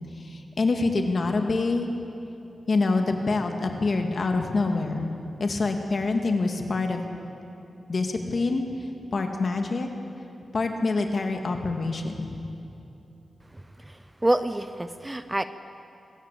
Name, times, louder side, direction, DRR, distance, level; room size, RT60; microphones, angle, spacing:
voice 1, 0.2-1.9 2.7-5.1 5.4-7.0 7.9-8.7 9.1-9.9 10.5-12.4, left 3 dB, 45° left, 4 dB, 1.9 m, -26 dB
voice 2, 13.5-15.4, right 1 dB, 15° right, 11 dB, 0.5 m, -28 dB
25.0 x 14.0 x 8.6 m, 2.8 s
wide cardioid pair, 145°, 0 cm